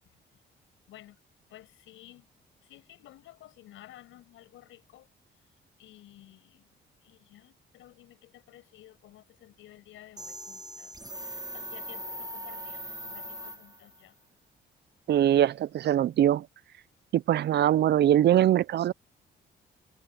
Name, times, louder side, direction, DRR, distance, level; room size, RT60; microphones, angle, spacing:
voice 1, 1.5-2.3 2.6-5.1 5.8-6.7 7.0-10.9 11.2-14.2, left 14 dB, 85° left, 7.1 m, -53 dB
sound 1, 10.2-14.0, right 1 dB, 20° right, 5.7 m, -40 dB
voice 2, 15.1-16.5 17.1-18.9, right 11 dB, 60° right, 0.5 m, -22 dB
cardioid pair, 90°, 20 cm